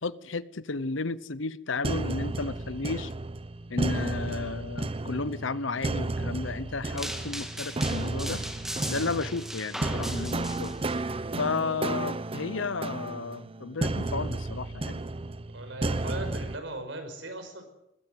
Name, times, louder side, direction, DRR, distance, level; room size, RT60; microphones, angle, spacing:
voice 1, 0.0-3.1 3.7-8.4 8.9-10.7 11.4-15.0, left 4 dB, 85° left, 0.9 m, -33 dB
sound 1, 1.8-16.6, right 2 dB, 30° right, 0.8 m, -33 dB
sound 2, 7.0-11.0, equal, ahead, 2.2 m, -38 dB
voice 2, 15.5-17.7, right 2 dB, 70° right, 5.3 m, -38 dB
20.5 x 16.5 x 8.0 m
head